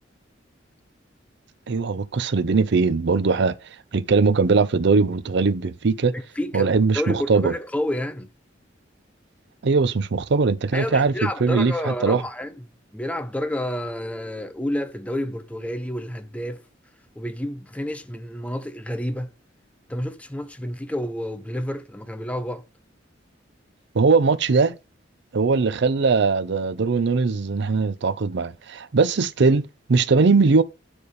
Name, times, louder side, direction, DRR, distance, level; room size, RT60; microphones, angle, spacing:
voice 1, 1.7-3.5 3.9-6.1 6.5-7.5 9.6-12.2 23.9-24.8 25.3-30.6, right 4 dB, 65° right, 0.5 m, -20 dB
voice 2, 6.1-6.7 6.9-8.3 10.7-12.7 12.9-16.6 17.2-19.3 19.9-22.6, left 1 dB, 5° left, 0.6 m, -29 dB
9.4 x 3.5 x 4.1 m
head